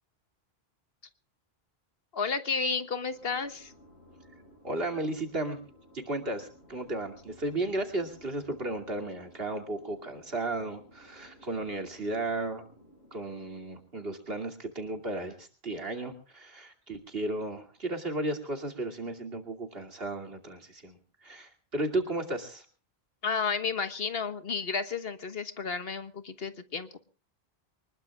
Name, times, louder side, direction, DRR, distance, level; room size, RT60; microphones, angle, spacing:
voice 1, 2.1-3.7 23.2-27.0, left 5 dB, 70° left, 11 dB, 1.5 m, -32 dB
sound 1, 3.1-13.8, left 1 dB, 85° left, 6.2 m, -57 dB
voice 2, 4.6-5.6 6.1-12.6 13.1-21.0 21.2-22.6, right 2 dB, 70° right, 4 dB, 2.8 m, -34 dB
24.0 x 20.5 x 2.4 m, 0.37 s
omnidirectional pair, 1.0 m